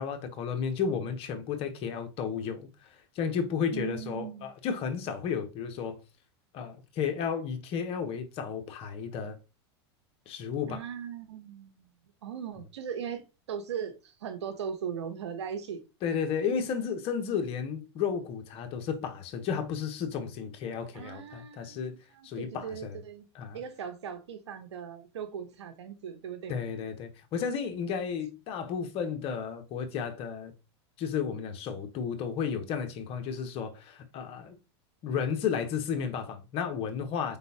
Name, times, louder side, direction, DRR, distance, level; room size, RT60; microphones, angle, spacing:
voice 1, 0.0-6.0 6.5-9.4 10.3-10.8 16.0-22.0 22.2-23.0 23.3-23.6 26.5-30.5 31.0-34.6 35.0-37.4, left 7 dB, 45° left, 1.0 m, -33 dB
voice 2, 3.7-4.5 10.7-11.9 12.2-15.8 20.9-23.3 23.5-26.5, right 8 dB, 85° right, 0.9 m, -39 dB
4.3 x 3.6 x 2.8 m
hypercardioid pair, 115°, 14 cm